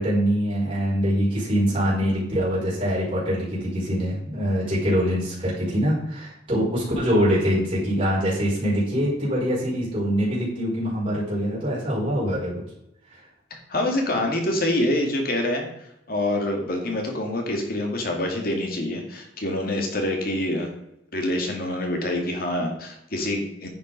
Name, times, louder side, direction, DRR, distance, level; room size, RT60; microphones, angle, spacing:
voice 1, 0.0-12.6, equal, 30° right, -7 dB, 4.9 m, -24 dB
voice 2, 13.7-15.7 16.1-20.7 21.1-23.7, left 1 dB, 55° left, 2 dB, 2.4 m, -26 dB
10.0 x 7.5 x 5.4 m, 0.80 s
head